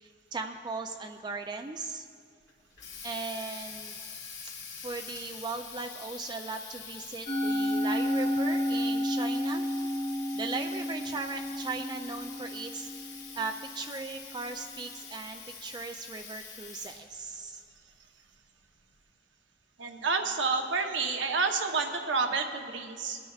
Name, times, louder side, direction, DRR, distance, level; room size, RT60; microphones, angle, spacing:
voice 1, 0.0-2.1 3.0-4.0 4.7-9.7 10.1-12.9 13.3-17.6, right 3 dB, 25° right, 5 dB, 0.3 m, -38 dB
Water tap faucet, 2.5-17.2, left 6 dB, 75° left, 2.2 m, -45 dB
Musical instrument, 7.3-13.7, left 1 dB, 30° left, 1.6 m, -31 dB
voice 2, 19.8-23.2, right 4 dB, 90° right, 4 dB, 0.9 m, -29 dB
22.0 x 9.7 x 2.4 m, 2.2 s
head